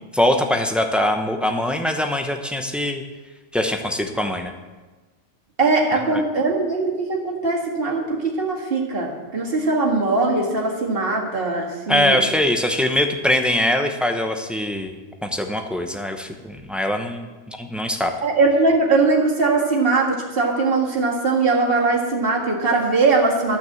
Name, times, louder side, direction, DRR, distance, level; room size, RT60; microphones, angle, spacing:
voice 1, 0.1-3.0 3.5-4.5 6.1-6.2 11.9-14.9 15.2-18.1, left 1 dB, ahead, 5 dB, 0.7 m, -22 dB
voice 2, 5.6-12.2 18.2-23.6, right 3 dB, 45° right, -1 dB, 2.1 m, -20 dB
12.5 x 6.1 x 7.8 m, 1.2 s
omnidirectional pair, 1.4 m